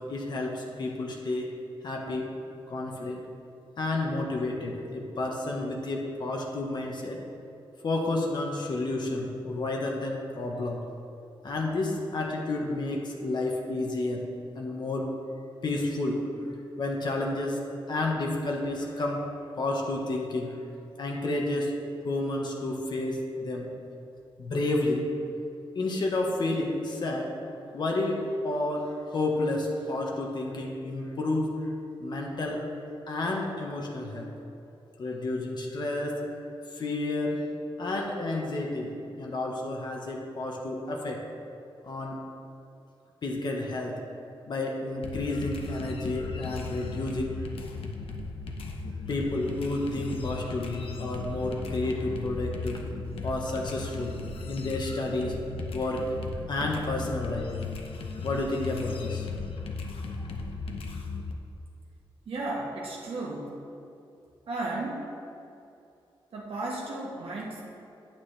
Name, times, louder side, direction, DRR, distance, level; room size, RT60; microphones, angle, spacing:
voice 1, 0.0-1.5 1.8-2.4 2.7-3.2 3.8-7.3 7.8-10.9 11.4-15.2 15.6-16.3 16.8-19.3 19.6-20.7 21.0-23.8 24.4-25.1 25.7-32.8 33.1-34.3 35.0-36.2 36.7-37.5 37.8-41.3 41.8-42.3 43.2-44.1 44.4-47.5 49.1-52.9 53.2-56.1 56.5-57.6 58.2-59.3, left 2 dB, 50° left, 0 dB, 0.9 m, -31 dB
sound 1, 45.0-61.3, left 4 dB, 80° left, 0.8 m, -36 dB
voice 2, 62.2-63.6 64.5-65.0 66.3-67.6, right 2 dB, 85° right, -3 dB, 1.4 m, -34 dB
9.4 x 8.9 x 3.3 m, 2.6 s
wide cardioid pair, 155°, 9 cm